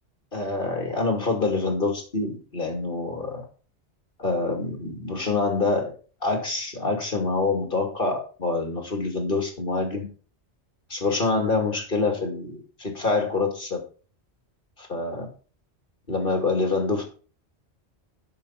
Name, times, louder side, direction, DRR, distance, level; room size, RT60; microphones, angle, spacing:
voice 1, 0.3-3.4 4.2-5.9 6.2-10.0 10.9-13.8 14.8-15.3 16.1-17.0, left 3 dB, 55° left, 3 dB, 2.6 m, -26 dB
7.5 x 6.9 x 5.7 m, 0.38 s
omnidirectional pair, 1.1 m